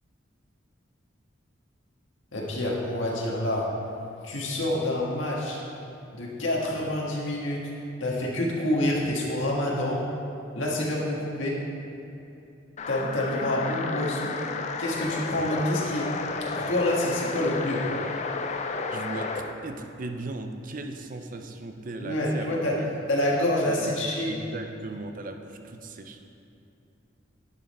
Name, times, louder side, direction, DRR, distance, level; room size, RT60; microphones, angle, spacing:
voice 1, 2.3-3.6 4.2-5.6 6.1-7.6 8.0-10.0 10.5-11.6 12.9-14.3 14.8-16.1 16.5-17.8 22.0-22.7 23.1-24.3, left 1 dB, 85° left, -3 dB, 1.6 m, -27 dB
sound 1, 12.8-19.5, left 4 dB, 35° left, 0.4 m, -32 dB
voice 2, 18.7-22.5 22.8-22.9 23.6-26.2, right 2 dB, 45° right, 6 dB, 0.5 m, -38 dB
10.5 x 5.5 x 4.3 m, 2.8 s
head